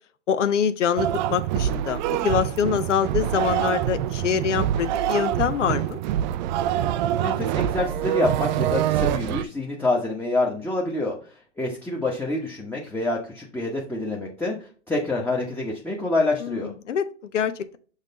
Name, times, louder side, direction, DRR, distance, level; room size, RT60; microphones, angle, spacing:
voice 1, 0.3-6.0 16.4-17.8, left 7 dB, 85° left, 11 dB, 0.6 m, -25 dB
sound 1, 1.0-9.4, right 11 dB, 40° right, 0.4 m, -25 dB
voice 2, 7.1-16.7, left 2 dB, 5° left, -2 dB, 1.0 m, -27 dB
6.5 x 3.2 x 5.3 m, 0.41 s
hypercardioid pair, 110°, 36 cm